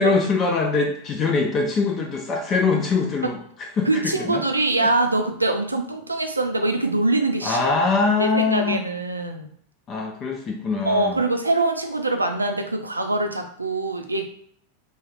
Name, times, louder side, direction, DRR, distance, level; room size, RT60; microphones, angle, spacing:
voice 1, 0.0-3.9 4.2-4.4 4.8-4.9 7.4-8.9 9.9-11.2, left 4 dB, 30° left, 1 dB, 0.5 m, -23 dB
voice 2, 3.9-7.8 8.2-9.5 10.9-14.2, right 2 dB, 80° right, 4 dB, 0.4 m, -23 dB
3.1 x 2.3 x 4.0 m, 0.62 s
figure-of-eight pair, 90°, 0 cm